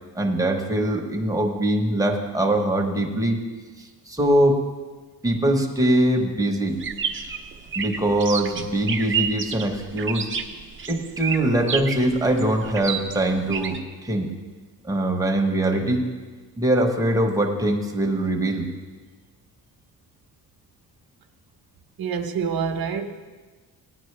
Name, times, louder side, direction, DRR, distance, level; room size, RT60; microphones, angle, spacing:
voice 1, 0.2-3.5 3.8-4.6 5.2-6.8 7.8-10.3 10.9-14.3 14.8-16.1 16.6-18.7, right 1 dB, 10° right, 1 dB, 1.1 m, -22 dB
sound 1, 6.8-13.8, right 7 dB, 30° right, 0.7 m, -30 dB
voice 2, 22.0-23.1, right 6 dB, 75° right, 7 dB, 1.0 m, -26 dB
16.5 x 10.0 x 3.3 m, 1.4 s
wide cardioid pair, 155°, 37 cm